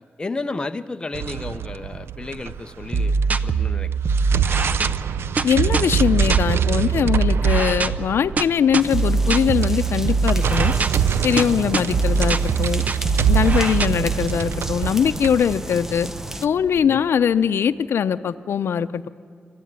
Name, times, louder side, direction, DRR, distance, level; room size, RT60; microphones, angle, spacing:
voice 1, 0.2-3.1 3.4-3.9 6.9-7.0 11.6-11.7 16.7-17.0, left 3 dB, 20° left, 8 dB, 0.7 m, -32 dB
sound 1, 1.1-3.5 3.9-16.9, right 9 dB, 85° right, 0.5 m, -26 dB
sound 2, 2.9-13.9, right 4 dB, 40° right, 0.8 m, -22 dB
voice 2, 5.4-10.7 11.2-12.8 13.3-16.1 16.4-19.1, left 8 dB, 80° left, 11 dB, 0.6 m, -21 dB
sound 3, 8.8-16.5, right 1 dB, 10° right, 0.8 m, -34 dB
27.0 x 14.5 x 9.5 m, 2.5 s
wide cardioid pair, 135°, 4 cm